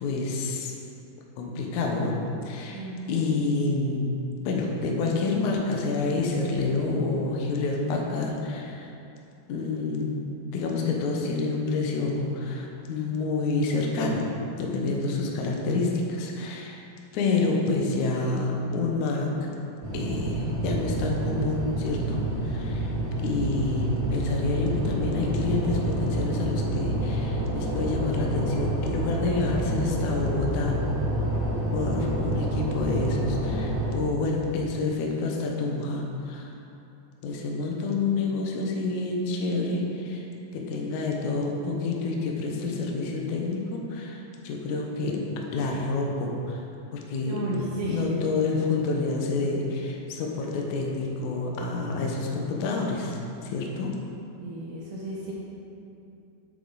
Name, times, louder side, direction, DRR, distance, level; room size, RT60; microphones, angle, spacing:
voice 1, 0.0-0.7 1.4-2.2 2.4-4.1 4.4-8.9 9.5-10.2 10.5-14.3 14.6-16.8 17.1-19.3 19.9-22.9 23.2-30.8 31.7-36.5 37.2-40.2 40.5-45.2 45.5-46.6 46.9-47.4 47.9-53.9, left 3 dB, 85° left, 0 dB, 1.7 m, -28 dB
voice 2, 2.7-3.3 23.3-23.4 47.2-48.3 54.4-55.3, right 1 dB, 75° right, -5 dB, 2.0 m, -33 dB
sound 1, 19.8-33.9, right 1 dB, 40° right, 1.3 m, -28 dB
8.3 x 7.4 x 4.0 m, 2.7 s
omnidirectional pair, 4.8 m